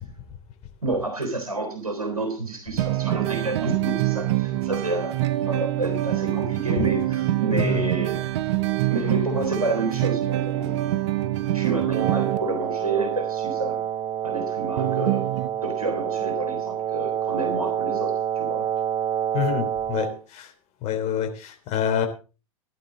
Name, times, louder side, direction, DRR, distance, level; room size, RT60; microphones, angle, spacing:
voice 1, 0.8-8.2 8.9-10.8 11.5-13.8 14.2-15.3 15.6-18.6, right 2 dB, 85° right, 3 dB, 3.9 m, -29 dB
sound 1, 2.8-12.4 14.8-15.5, right 15 dB, 55° right, 1.0 m, -25 dB
voice 2, 7.5-7.8 19.3-20.5 20.8-22.1, left 9 dB, 35° left, 5 dB, 3.3 m, -27 dB
Wind instrument woodwind instrument, 11.9-20.2, right 9 dB, 35° right, 1.3 m, -27 dB
15.5 x 11.0 x 3.9 m, 0.33 s
figure-of-eight pair, 95°, 18 cm